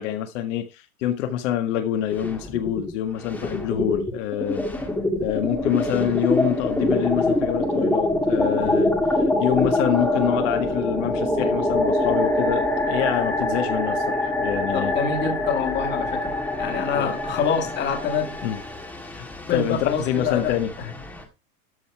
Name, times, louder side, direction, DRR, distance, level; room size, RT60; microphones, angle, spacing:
voice 1, 0.0-4.6 5.2-14.9 16.9-17.1 18.4-18.6 19.0-20.7, left 11 dB, 55° left, 1.7 m, -26 dB
sound 1, 2.1-2.9 3.2-21.2, left 1 dB, 5° left, 1.5 m, -25 dB
voice 2, 14.7-16.3 16.6-18.4 19.5-20.9, left 6 dB, 25° left, 2.1 m, -26 dB
13.0 x 5.3 x 4.7 m
supercardioid pair, 150°, 43 cm